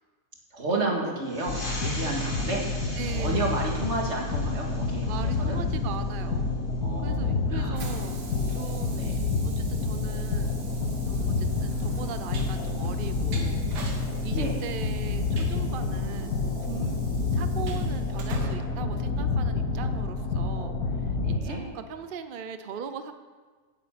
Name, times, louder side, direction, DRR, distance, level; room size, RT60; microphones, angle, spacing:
voice 1, 0.5-5.6 6.8-7.8 9.0-9.2 14.3-14.6 21.2-21.6, right 2 dB, 45° right, 0 dB, 2.2 m, -32 dB
sound 1, 1.2-6.4, left 1 dB, 30° left, 2.3 m, -41 dB
sound 2, 1.5-21.4, left 3 dB, 70° left, 1.5 m, -28 dB
voice 2, 3.0-3.6 5.1-6.6 7.0-9.1 9.4-10.6 11.0-13.7 14.2-16.4 16.7-23.1, right 6 dB, 60° right, 9 dB, 0.5 m, -39 dB
Train, 6.6-19.8, right 4 dB, 90° right, 2.0 m, -46 dB
9.5 x 8.2 x 8.8 m, 1.4 s
omnidirectional pair, 1.7 m